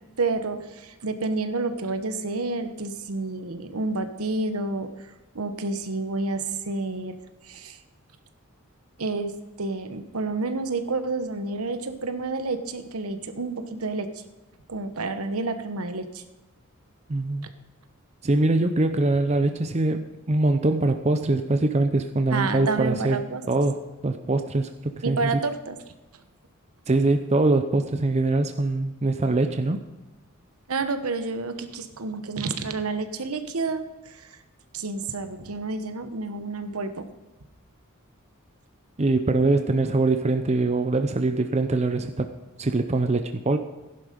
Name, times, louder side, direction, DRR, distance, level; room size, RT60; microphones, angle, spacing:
voice 1, 0.2-4.9 5.3-7.2 7.4-7.8 9.0-9.3 9.6-14.1 14.7-16.2 22.3-23.4 25.0-25.8 30.7-34.4 34.7-37.1, right 3 dB, 85° right, 9 dB, 1.1 m, -29 dB
voice 2, 17.1-17.5 18.2-23.2 23.5-25.3 26.9-29.8 39.0-42.3 42.6-43.6, right 2 dB, 30° right, 8 dB, 0.6 m, -23 dB
15.5 x 11.0 x 5.2 m, 1.1 s
head